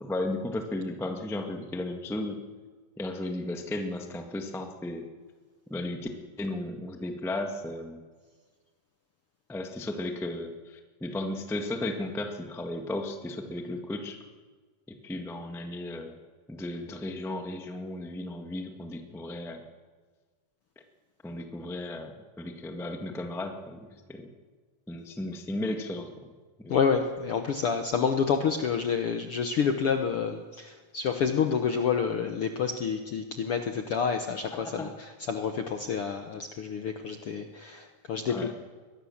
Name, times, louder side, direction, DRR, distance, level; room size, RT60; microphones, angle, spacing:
voice 1, 0.0-2.4 3.0-5.1 5.7-6.1 6.4-8.0 9.5-14.2 14.9-16.2 16.5-19.6 21.2-24.3 24.9-26.1 26.6-26.8 34.5-34.9 38.3-38.5, left 1 dB, ahead, 4 dB, 0.5 m, -35 dB
voice 2, 26.7-38.5, left 6 dB, 70° left, 6 dB, 1.3 m, -28 dB
22.0 x 17.0 x 7.3 m, 1.5 s
omnidirectional pair, 3.9 m